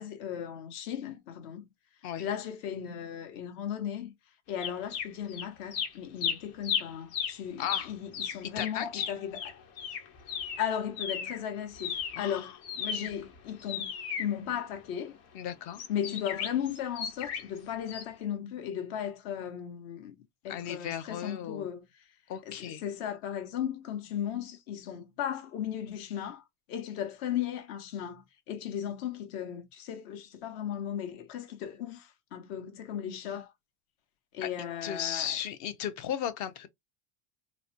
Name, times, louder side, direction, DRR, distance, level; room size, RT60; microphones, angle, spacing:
voice 1, 0.0-1.7 2.2-4.1 4.5-9.6 10.6-15.2 15.9-20.2 20.4-21.9 22.4-26.4 26.7-33.5 34.3-35.4, left 9 dB, 65° left, 1.1 m, -36 dB
sound 1, 4.6-5.5 5.7-11.4 11.7-15.0 15.7-17.6 17.9-18.0, left 7 dB, 85° left, 1.3 m, -35 dB
voice 2, 7.6-7.9 8.4-9.1 12.2-12.5 15.3-15.8 20.5-21.7 22.3-22.8 34.4-34.5 34.8-36.7, left 9 dB, 40° left, 0.6 m, -35 dB
3.9 x 2.1 x 2.7 m
supercardioid pair, 155°, 43 cm